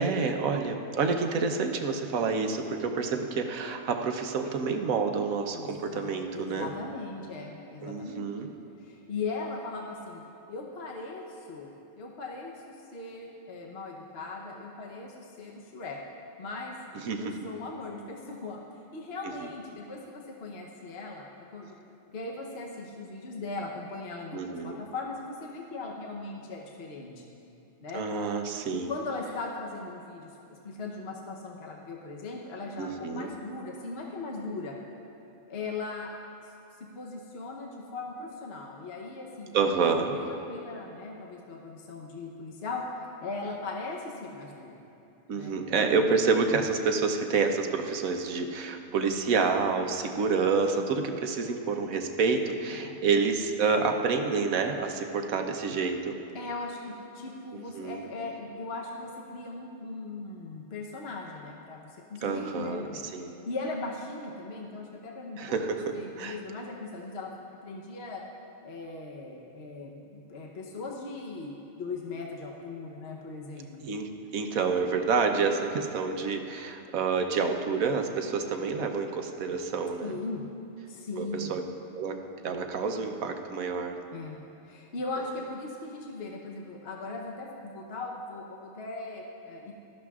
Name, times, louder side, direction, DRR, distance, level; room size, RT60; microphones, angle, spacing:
voice 1, 0.0-6.7 7.8-8.5 16.9-17.5 19.2-19.3 24.3-24.8 27.9-28.9 32.8-33.3 39.5-40.1 45.3-56.2 57.5-58.0 62.2-62.8 63.1-63.4 65.4-66.4 73.8-80.2 81.2-81.6 81.9-84.0, right 4 dB, 75° right, 5 dB, 1.2 m, -28 dB
voice 2, 5.5-8.3 8.8-10.2 10.5-11.7 12.0-16.0 16.4-16.8 17.2-18.6 18.9-21.8 22.1-27.3 27.8-28.0 28.7-30.3 30.6-34.8 35.5-36.1 36.4-36.5 36.8-39.6 40.1-44.8 45.3-45.5 52.7-52.9 56.3-67.3 67.6-68.2 68.6-73.9 80.0-80.4 80.9-81.6 84.1-84.4 84.6-89.7, left 3 dB, 50° left, -1 dB, 1.1 m, -39 dB
18.0 x 13.0 x 2.4 m, 2.8 s
omnidirectional pair, 1.5 m